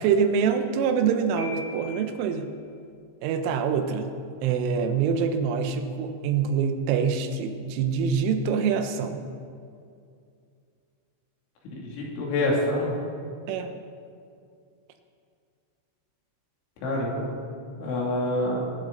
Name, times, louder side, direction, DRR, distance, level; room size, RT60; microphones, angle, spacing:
voice 1, 0.0-2.5 3.2-4.1 4.4-9.3 13.5-13.7, right 6 dB, 80° right, 7 dB, 3.3 m, -25 dB
Piano, 1.4-2.3, left 3 dB, 45° left, 6.1 m, -40 dB
voice 2, 11.7-12.9 16.8-17.3 17.8-18.6, left 1 dB, 70° left, -4 dB, 5.0 m, -26 dB
22.0 x 12.0 x 3.9 m, 2.4 s
omnidirectional pair, 5.7 m